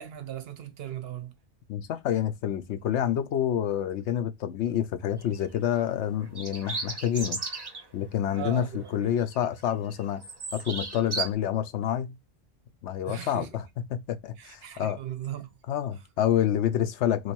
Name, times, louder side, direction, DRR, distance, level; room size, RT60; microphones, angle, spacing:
voice 1, 0.0-1.3 8.4-8.9 13.1-13.5 14.4-15.5, right 10 dB, 65° right, 0.8 m, -37 dB
voice 2, 1.7-7.4 7.9-10.2 10.5-12.2 12.8-15.0 15.7-17.3, left 10 dB, 75° left, 0.9 m, -28 dB
sound 1, 5.2-5.4 6.2-7.8 8.3-8.4 8.9-9.6 9.9-11.3, right 4 dB, 25° right, 0.6 m, -35 dB
3.1 x 2.5 x 4.3 m
omnidirectional pair, 1.2 m